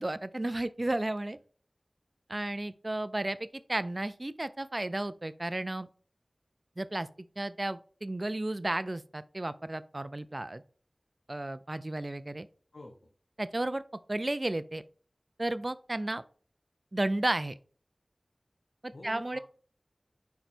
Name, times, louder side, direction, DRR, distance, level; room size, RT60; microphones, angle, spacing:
voice 1, 0.0-1.4 2.3-5.9 6.8-7.1 7.4-10.6 11.3-12.5 13.4-13.8 14.1-14.8 15.4-16.2 16.9-17.5 18.8-19.4, right 1 dB, 40° right, 0.4 m, -33 dB
voice 2, 12.7-13.1 18.9-19.4, left 2 dB, 85° left, 1.0 m, -48 dB
5.0 x 4.6 x 4.3 m
wide cardioid pair, 45°, 0 cm